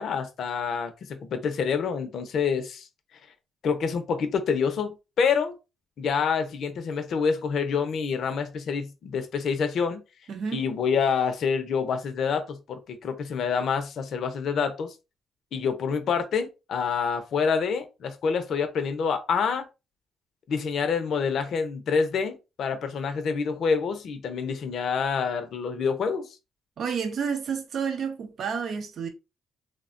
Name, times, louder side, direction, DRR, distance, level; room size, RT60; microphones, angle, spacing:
voice 1, 0.0-2.9 3.6-5.6 6.0-10.0 10.5-14.9 15.5-19.7 20.5-26.3, left 6 dB, 65° left, 0.6 m, -27 dB
voice 2, 10.3-10.7 26.8-29.1, right 6 dB, 60° right, 0.6 m, -30 dB
3.2 x 2.1 x 2.5 m
cardioid pair, 90°, 0 cm